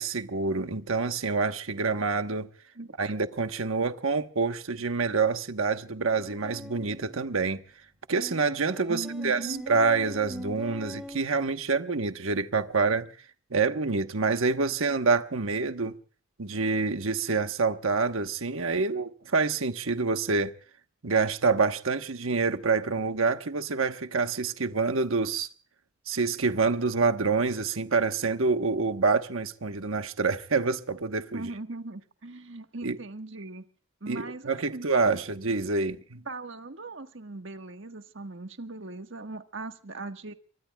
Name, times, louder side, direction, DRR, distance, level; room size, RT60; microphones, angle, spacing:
voice 1, 0.0-2.5 3.0-7.6 8.1-13.1 13.5-15.9 16.4-20.5 21.0-25.5 26.1-31.5 32.8-33.0 34.1-36.2, right 4 dB, 80° right, 1.2 m, -27 dB
sound 1, 6.2-7.2 8.1-11.2, equal, 5° right, 2.7 m, -42 dB
voice 2, 8.9-9.6 31.3-33.6 34.0-35.2 36.3-40.3, right 2 dB, 60° right, 1.5 m, -39 dB
24.0 x 24.0 x 2.3 m
head